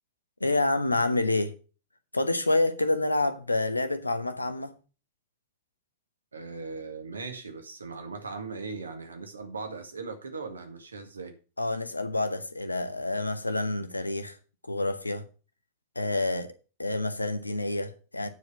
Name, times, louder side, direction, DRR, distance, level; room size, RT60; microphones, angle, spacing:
voice 1, 0.4-1.5 2.1-4.7 11.6-14.3 14.7-15.3 15.9-16.5 16.8-18.3, left 2 dB, 85° left, 1.0 m, -28 dB
voice 2, 6.3-11.3, right 4 dB, 75° right, 1.8 m, -39 dB
9.2 x 4.9 x 7.1 m
figure-of-eight pair, 90°, 0 cm